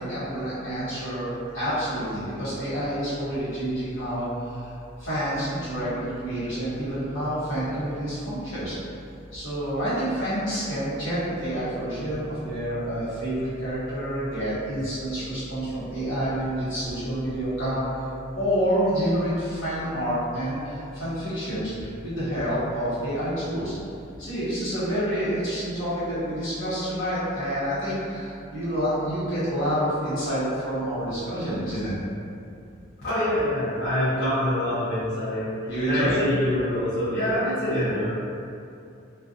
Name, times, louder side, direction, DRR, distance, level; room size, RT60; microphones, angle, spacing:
voice 1, 0.0-8.8 9.3-18.1 18.3-23.8 24.2-31.9 35.6-36.2, equal, 70° left, -12 dB, 1.2 m, -28 dB
voice 2, 33.0-35.5 35.8-38.1, left 1 dB, 55° left, -13 dB, 0.5 m, -25 dB
2.5 x 2.2 x 2.5 m, 2.6 s
head